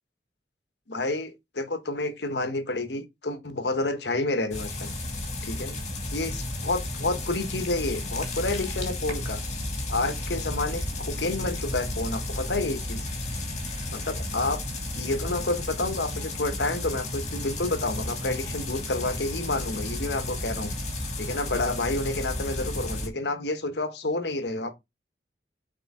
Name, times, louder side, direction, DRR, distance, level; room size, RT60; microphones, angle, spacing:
voice 1, 0.9-4.9 5.4-5.8 6.1-9.4 9.9-13.1 13.9-14.6 14.9-20.7 21.2-24.7, left 2 dB, 70° left, 1.2 m, -29 dB
sound 1, 4.5-23.1, left 1 dB, 40° left, 2.3 m, -33 dB
6.9 x 4.7 x 3.6 m
head